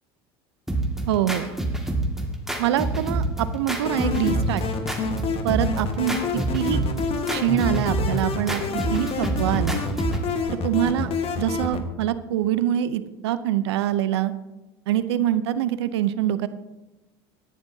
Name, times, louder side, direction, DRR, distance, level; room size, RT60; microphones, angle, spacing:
sound 1, 0.7-10.3, right 2 dB, 5° right, 2.0 m, -27 dB
voice 1, 1.1-1.5 2.6-4.6 5.4-6.8 7.3-9.8 10.5-11.1 11.4-14.3 14.9-16.5, right 12 dB, 85° right, 13 dB, 0.6 m, -24 dB
sound 2, 3.9-11.8, left 4 dB, 45° left, 1.5 m, -28 dB
18.0 x 11.0 x 2.8 m, 1.1 s
hypercardioid pair, 90°, 14 cm